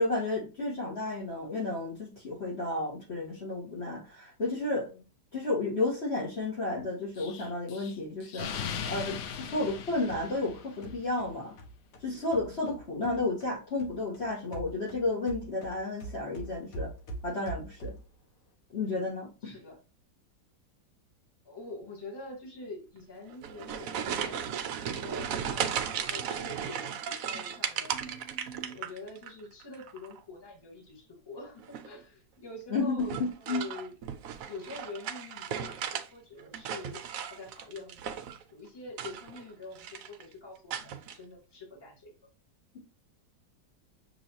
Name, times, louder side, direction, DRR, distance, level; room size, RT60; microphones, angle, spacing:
voice 1, 0.0-4.9 5.3-8.5 8.9-11.6 12.0-16.9 17.2-17.9 18.7-19.6 32.7-33.6, left 2 dB, 40° left, -4 dB, 1.4 m, -32 dB
Explosion, 7.2-11.0, left 7 dB, 80° left, 0.6 m, -39 dB
sound 1, 9.6-13.5 13.8-18.2, right 2 dB, 60° left, 1.3 m, -44 dB
voice 2, 19.4-19.8 21.4-28.0 28.6-33.9 34.5-37.0 37.3-38.2 38.5-42.1, left 2 dB, 15° left, -2 dB, 1.2 m, -45 dB
sound 2, 23.3-29.3 29.6-30.2 31.6-32.0 33.0-36.1 36.4-38.4 38.9-39.5 39.8-40.2 40.7-41.2, right 8 dB, 70° right, 0.8 m, -36 dB
6.3 x 3.0 x 2.8 m, 0.32 s
omnidirectional pair, 1.9 m